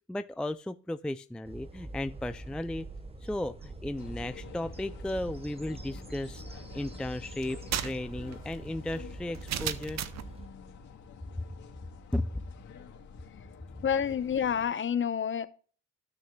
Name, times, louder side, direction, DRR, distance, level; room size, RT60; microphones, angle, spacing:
voice 1, 0.1-2.9 3.2-6.4 6.7-10.0 11.4-11.5 12.1-12.3, left 1 dB, 5° left, 11 dB, 0.4 m, -35 dB
sound 1, 1.4-10.5, right 2 dB, 20° right, 1.1 m, -44 dB
sound 2, 3.9-14.7, left 5 dB, 65° left, 2.4 m, -49 dB
sound 3, 7.4-10.3, right 10 dB, 60° right, 0.7 m, -36 dB
voice 2, 13.8-15.5, left 8 dB, 40° left, 13 dB, 0.8 m, -28 dB
15.5 x 6.3 x 2.3 m, 0.40 s
cardioid pair, 90°, 30 cm